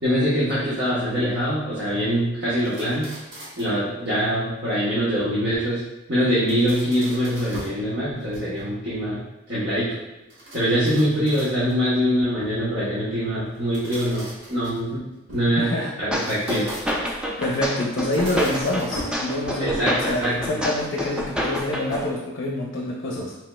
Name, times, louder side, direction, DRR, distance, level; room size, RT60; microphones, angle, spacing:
voice 1, 0.0-3.1 3.6-5.8 6.1-9.2 9.5-9.9 10.5-15.0 15.3-15.7 16.0-17.0 19.6-20.6, equal, 55° right, -11 dB, 0.9 m, -23 dB
sound 1, 2.6-3.8 6.2-7.9 8.2-8.8 10.3-11.9 13.5-15.5 16.1-17.2 17.9-19.8, right 1 dB, 75° right, 1.0 m, -40 dB
voice 2, 15.5-15.9 17.4-23.4, left 1 dB, 65° left, -2 dB, 0.5 m, -26 dB
sound 2, 16.1-22.1, equal, 5° right, 0.3 m, -28 dB
4.4 x 3.1 x 2.2 m, 0.94 s
head